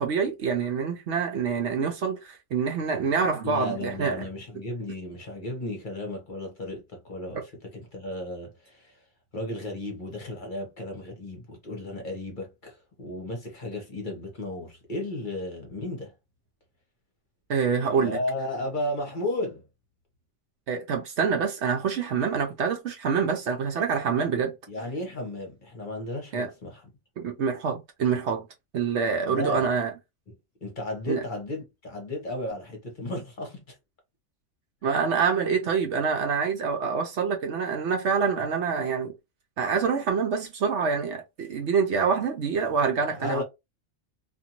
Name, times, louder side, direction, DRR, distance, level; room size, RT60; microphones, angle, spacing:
voice 1, 0.0-4.3 7.3-7.4 17.5-18.2 20.7-24.5 26.3-26.5 27.2-28.5 28.7-29.9 31.1-31.2 34.8-39.1 39.6-43.4, right 6 dB, 65° right, 0.8 m, -26 dB
voice 2, 3.4-9.0 9.3-16.1 18.0-19.6 24.7-26.9 29.2-29.7 30.3-30.4 30.6-33.8 34.9-35.0 43.1-43.4, left 1 dB, 40° left, 1.0 m, -34 dB
2.5 x 2.5 x 2.8 m
omnidirectional pair, 1.4 m